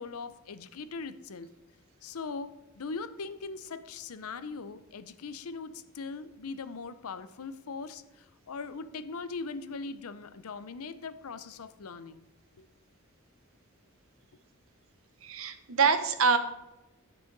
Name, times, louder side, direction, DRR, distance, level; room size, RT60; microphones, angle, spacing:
voice 1, 0.0-1.5 2.0-12.2 12.6-12.7, left 4 dB, 80° left, 13 dB, 0.6 m, -40 dB
voice 2, 15.2-16.4, right 5 dB, 65° right, 9 dB, 0.9 m, -25 dB
9.8 x 7.8 x 3.9 m, 0.99 s
head